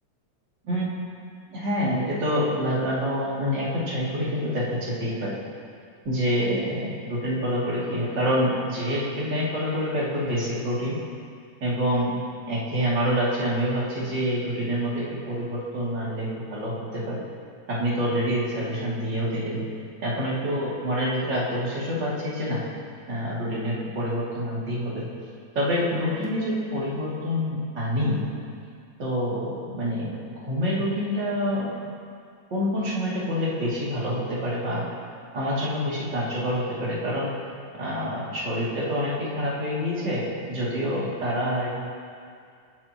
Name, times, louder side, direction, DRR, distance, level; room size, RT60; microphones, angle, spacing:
voice 1, 1.5-5.4 6.0-11.0 11.6-12.2 12.5-17.3 17.7-19.6 20.0-22.6 23.1-25.0 25.5-28.2 29.0-31.7 32.5-34.9 35.3-37.3 37.8-41.7, equal, 35° right, -7 dB, 3.2 m, -27 dB
19.0 x 9.7 x 3.0 m, 2.3 s
omnidirectional pair, 3.4 m